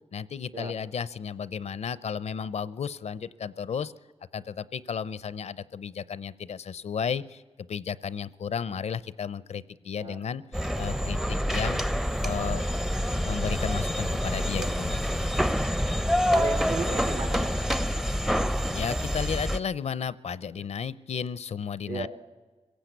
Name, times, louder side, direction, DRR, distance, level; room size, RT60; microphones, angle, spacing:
voice 1, 0.1-3.9 4.3-11.8 12.2-12.6 13.2-15.0 18.7-22.1, left 7 dB, 70° left, 17 dB, 0.6 m, -33 dB
sound 1, 10.5-19.6, equal, 5° right, 0.6 m, -27 dB
voice 2, 16.3-17.5 21.9-22.1, right 3 dB, 70° right, 7 dB, 2.0 m, -33 dB
24.5 x 16.5 x 8.1 m, 1.4 s
wide cardioid pair, 85°, 12 cm